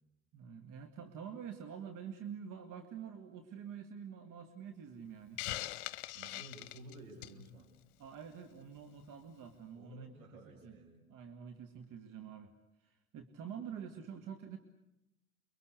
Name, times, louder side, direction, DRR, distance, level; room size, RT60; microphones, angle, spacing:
voice 1, 0.3-5.6 8.0-10.1 10.5-10.8 11.1-12.5 12.8-14.6, right 7 dB, 45° right, 6 dB, 2.2 m, -47 dB
Hiss, 5.4-7.4, left 16 dB, 55° left, 1.0 m, -41 dB
voice 2, 6.1-7.7 9.8-11.1, right 1 dB, 75° right, 0 dB, 7.1 m, -53 dB
29.0 x 23.0 x 8.1 m, 0.88 s
figure-of-eight pair, 60°, 43 cm